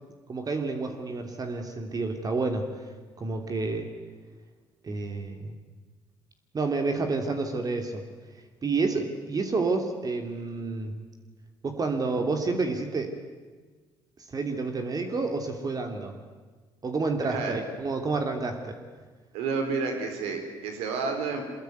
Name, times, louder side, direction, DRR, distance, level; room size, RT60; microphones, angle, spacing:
voice 1, 0.3-2.7 3.2-3.9 4.8-5.5 6.5-8.0 8.6-11.0 11.6-13.2 14.2-16.2 16.8-18.7, right 3 dB, 35° right, 5 dB, 2.9 m, -29 dB
voice 2, 19.3-21.4, right 4 dB, 85° right, 5 dB, 4.4 m, -30 dB
23.5 x 20.5 x 9.4 m, 1.4 s
supercardioid pair, 75°, 10 cm